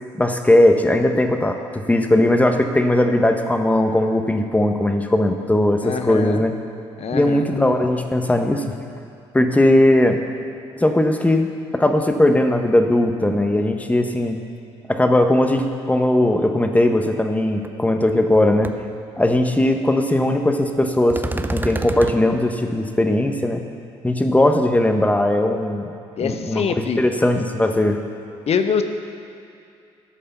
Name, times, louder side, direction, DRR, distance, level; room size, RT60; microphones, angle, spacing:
voice 1, 0.1-6.5 7.1-8.8 9.3-10.2 10.8-11.5 11.7-14.4 14.9-18.7 19.2-21.2 21.5-23.6 24.0-25.9 26.2-28.0, left 1 dB, 10° left, 5 dB, 1.1 m, -18 dB
voice 2, 5.8-6.4 7.0-7.5 26.2-27.0 28.5-28.8, left 6 dB, 50° left, 8 dB, 0.9 m, -24 dB
sound 1, 17.6-17.7 18.1-18.4 18.6-18.7 21.1-22.2, right 2 dB, 15° right, 0.6 m, -26 dB
13.0 x 5.5 x 6.9 m, 2.6 s
hypercardioid pair, 55°, 14 cm